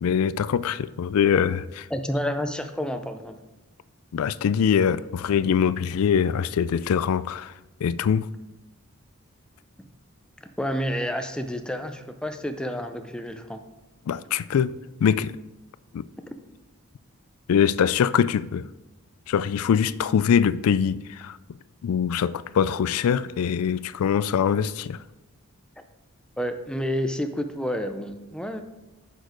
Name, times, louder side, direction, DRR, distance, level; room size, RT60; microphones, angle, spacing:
voice 1, 0.0-1.9 4.1-7.5 7.8-8.3 14.1-14.7 15.0-15.3 15.9-16.0 17.5-18.7 19.3-21.4 21.8-25.0, left 7 dB, 75° left, 0.3 m, -23 dB
voice 2, 1.9-3.4 9.8-9.9 10.4-13.6 26.4-28.6, equal, 5° left, 0.5 m, -29 dB
9.5 x 6.5 x 3.9 m
head